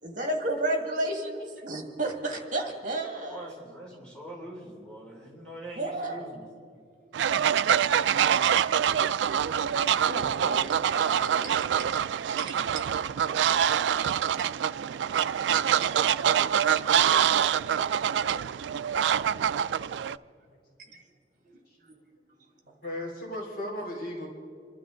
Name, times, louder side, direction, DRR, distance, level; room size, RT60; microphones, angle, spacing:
voice 1, 0.0-3.5 5.8-6.3 10.1-11.5 12.4-12.9 15.8-15.9 18.3-18.4 20.9-21.0 21.4-21.6 21.8-21.9, right 1 dB, 45° right, 3 dB, 2.0 m, -33 dB
voice 2, 3.3-6.5, right 1 dB, 5° left, -4 dB, 3.1 m, -43 dB
Fowl, 7.1-20.2, right 9 dB, 80° right, 0.3 m, -25 dB
voice 3, 22.8-24.3, left 1 dB, 55° left, -2 dB, 3.3 m, -35 dB
27.5 x 12.5 x 3.8 m, 2.4 s
head